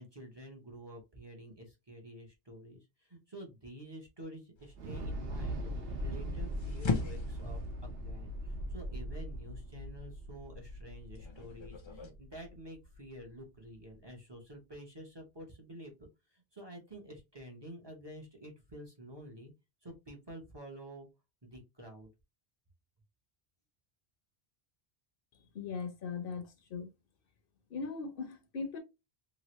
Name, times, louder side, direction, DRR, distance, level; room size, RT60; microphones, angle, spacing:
voice 1, 0.0-19.5 19.8-21.1 21.4-22.1, right 1 dB, 30° right, 0.7 m, -49 dB
sound 1, 4.6-12.1, left 4 dB, 40° left, 0.5 m, -41 dB
Thunder / Explosion, 4.8-13.0, equal, 70° right, 1.0 m, -40 dB
voice 2, 25.5-26.9 27.7-28.8, left 5 dB, 65° left, 0.8 m, -39 dB
3.0 x 2.4 x 2.9 m
omnidirectional pair, 1.0 m